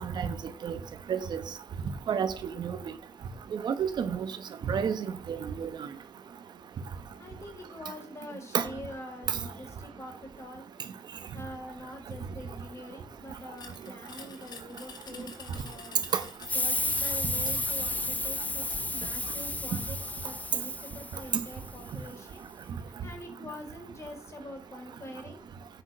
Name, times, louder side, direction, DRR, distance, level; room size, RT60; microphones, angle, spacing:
voice 1, 0.0-0.3 0.6-0.8 1.1-1.4 2.1-2.8 3.5-4.3 4.6-5.7 8.5-8.7 9.3-9.4 16.1-16.2, right 7 dB, 80° right, 1.2 m, -30 dB
voice 2, 7.2-10.7 11.3-16.1 16.5-20.0 20.2-22.4 23.0-25.4, left 1 dB, 40° left, 4.3 m, -45 dB
sound 1, 13.6-18.0, left 5 dB, 70° left, 1.9 m, -48 dB
sound 2, 16.4-21.8, left 2 dB, 20° left, 0.9 m, -32 dB
9.1 x 5.9 x 6.1 m
cardioid pair, 70°, 7 cm